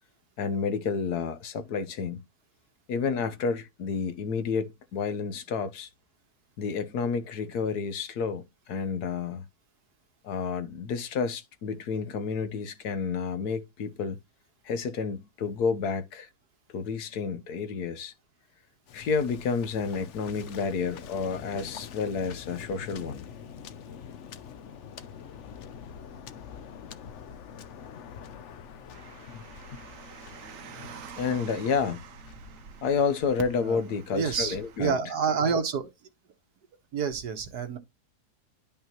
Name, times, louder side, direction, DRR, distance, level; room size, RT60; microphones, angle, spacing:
voice 1, 0.4-2.3 2.9-5.9 6.6-9.5 10.2-14.2 14.6-16.3 16.7-18.1 18.9-23.3 31.2-32.0 32.8-34.9, left 5 dB, 80° left, 1.5 m, -30 dB
Waves surf, 18.9-32.8, left 7 dB, 60° left, 0.9 m, -45 dB
Car, 28.9-34.8, right 7 dB, 60° right, 1.1 m, -47 dB
voice 2, 33.5-33.8 34.1-35.9 36.9-37.8, right 6 dB, 80° right, 1.8 m, -28 dB
10.5 x 5.4 x 3.0 m
omnidirectional pair, 1.7 m